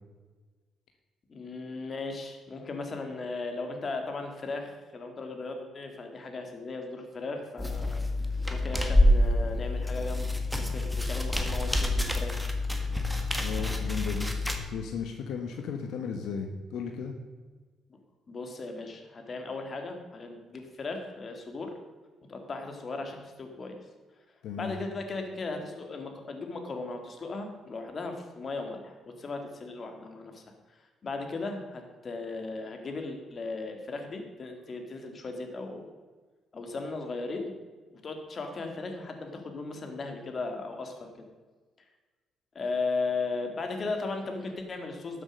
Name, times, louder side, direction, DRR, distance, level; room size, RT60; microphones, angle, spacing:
voice 1, 1.3-8.0 8.5-12.5 18.3-21.7 22.3-23.8 24.5-30.4 31.0-35.9 36.5-37.5 37.9-41.1 42.5-45.2, left 3 dB, 40° left, 5 dB, 2.3 m, -36 dB
sound 1, 7.6-14.6, left 1 dB, ahead, 1.6 m, -27 dB
voice 2, 13.4-17.1 24.4-24.8, left 6 dB, 80° left, 4 dB, 1.2 m, -35 dB
12.5 x 7.5 x 6.5 m, 1.4 s
cardioid pair, 90°, 0 cm